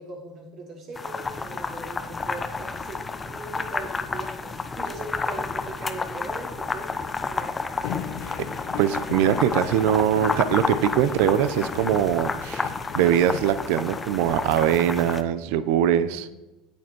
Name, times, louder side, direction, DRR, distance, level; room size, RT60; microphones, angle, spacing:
voice 1, 0.0-8.0 16.1-16.2, right 2 dB, 50° right, 0 dB, 3.3 m, -40 dB
sound 1, 0.9-15.2, left 4 dB, 20° left, 0.9 m, -31 dB
sound 2, 7.8-13.5, left 8 dB, 75° left, 1.1 m, -36 dB
voice 2, 8.8-16.3, right 10 dB, 75° right, 15 dB, 0.5 m, -22 dB
8.9 x 8.6 x 4.5 m, 1.1 s
supercardioid pair, 105°, 0 cm